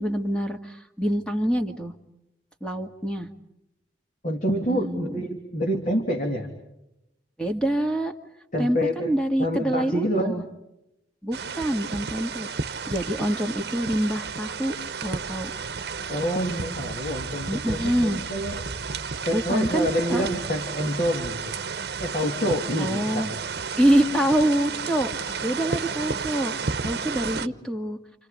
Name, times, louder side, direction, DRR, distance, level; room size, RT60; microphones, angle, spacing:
voice 1, 0.0-1.9 2.6-3.3 4.7-5.2 7.4-8.1 8.6-10.4 11.2-12.5 12.9-15.5 17.5-18.2 19.3-20.2 22.8-23.3 23.8-26.5 26.8-28.0, right 1 dB, 5° left, 4 dB, 2.0 m, -26 dB
voice 2, 4.2-6.5 8.5-9.1 9.4-10.4 16.1-18.6 19.3-21.5 22.0-23.4 27.2-27.5, equal, 50° left, 1 dB, 3.0 m, -27 dB
sound 1, 11.3-27.5, right 5 dB, 65° right, 0.9 m, -32 dB
29.0 x 28.5 x 5.2 m, 0.89 s
head